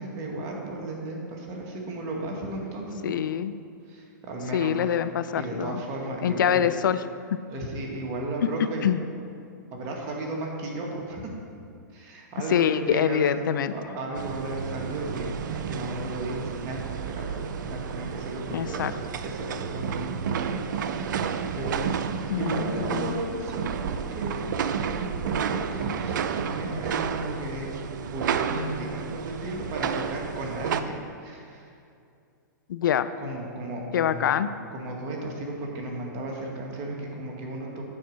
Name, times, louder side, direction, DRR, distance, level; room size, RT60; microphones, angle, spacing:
voice 1, 0.0-3.2 3.9-5.0 5.4-6.6 7.5-8.8 9.7-11.3 11.9-21.9 22.3-24.4 24.9-27.7 28.1-31.7 33.2-34.4 34.7-37.9, right 2 dB, 35° right, -1 dB, 1.6 m, -34 dB
voice 2, 3.0-3.5 4.5-5.8 6.2-7.0 8.8-9.0 12.5-13.8 18.5-18.9 22.3-23.2 32.7-33.1 33.9-34.5, left 9 dB, 75° left, 13 dB, 0.4 m, -25 dB
sound 1, 14.1-30.8, right 7 dB, 70° right, 0.5 m, -31 dB
8.6 x 4.5 x 6.3 m, 2.5 s
hypercardioid pair, 130°, 11 cm